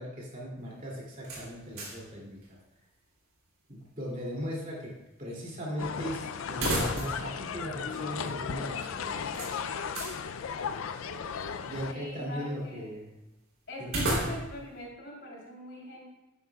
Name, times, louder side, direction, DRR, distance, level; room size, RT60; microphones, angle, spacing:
voice 1, 0.0-2.4 3.7-4.9 5.2-9.2 11.7-13.1 13.8-13.9, equal, 40° right, -4 dB, 2.6 m, -38 dB
sound 1, 1.2-2.1 2.4-2.5 6.5-7.3 7.6-7.7 9.3-10.2 13.8-14.7, right 1 dB, 90° right, 3.2 m, -33 dB
sound 2, 5.8-11.9, left 6 dB, 85° left, 0.5 m, -35 dB
voice 2, 11.9-12.9 13.7-16.0, left 1 dB, 60° left, -4 dB, 3.2 m, -42 dB
11.5 x 9.8 x 2.3 m, 0.99 s
head